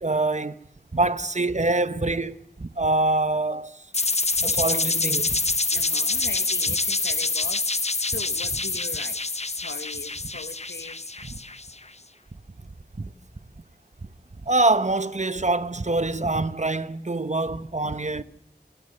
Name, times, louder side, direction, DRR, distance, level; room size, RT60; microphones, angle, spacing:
voice 1, 0.0-0.6 0.9-3.8 4.4-5.4 13.0-13.1 14.4-18.2, right 2 dB, 40° right, 1.0 m, -25 dB
sound 1, 3.9-11.7, left 3 dB, 35° left, 0.7 m, -26 dB
voice 2, 5.7-9.2 9.4-11.0, left 3 dB, 80° left, 1.1 m, -40 dB
27.5 x 15.0 x 6.6 m
wide cardioid pair, 40°, 18 cm